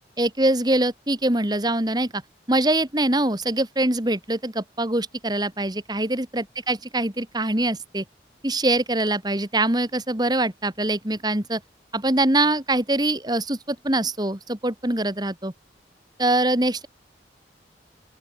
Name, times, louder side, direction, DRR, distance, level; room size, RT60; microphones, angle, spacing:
voice 1, 0.2-2.2 2.5-8.0 8.4-11.6 11.9-15.5 16.2-16.9, right 1 dB, 25° right, 2.4 m, -23 dB
open air
head